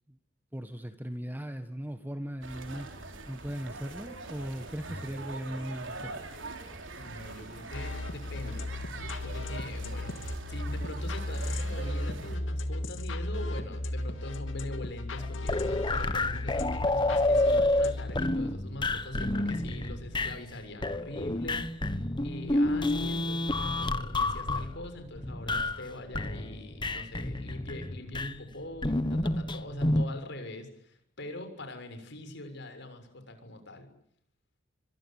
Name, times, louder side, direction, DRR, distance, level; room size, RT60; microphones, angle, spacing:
voice 1, 0.5-2.9 3.3-6.4, equal, 10° right, 9 dB, 1.5 m, -38 dB
sound 1, 2.4-12.4, right 2 dB, 70° right, 3.9 m, -42 dB
voice 2, 7.0-8.7 9.2-21.6 22.2-33.9, left 1 dB, 65° left, 7 dB, 6.7 m, -43 dB
sound 2, 7.7-18.3, left 1 dB, 80° left, 2.5 m, -35 dB
sound 3, 15.2-20.6 20.8-25.9 26.1-28.3 28.8-30.0, left 2 dB, 25° left, 1.4 m, -29 dB
25.0 x 22.0 x 9.1 m, 0.67 s
head